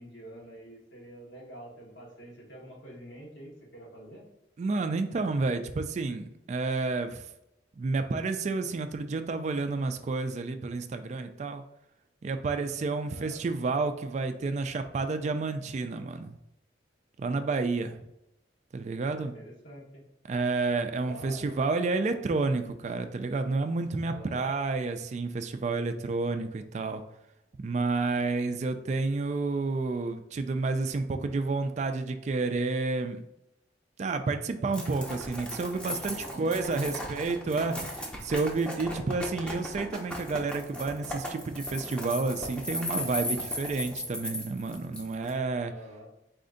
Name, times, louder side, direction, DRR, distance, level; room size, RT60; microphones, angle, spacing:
voice 1, 0.0-4.2 13.1-13.4 19.1-20.0 21.0-21.5 24.1-24.5 35.8-37.3 45.7-46.1, equal, 80° left, -4 dB, 1.5 m, -47 dB
voice 2, 4.6-7.3 7.8-11.6 12.2-16.4 17.2-18.0 18.7-19.3 20.3-27.0 27.6-33.2 34.0-45.7, right 3 dB, 40° right, 8 dB, 0.3 m, -30 dB
sound 1, 34.7-45.3, left 1 dB, 5° left, 0.6 m, -37 dB
4.2 x 2.6 x 3.8 m, 0.84 s
head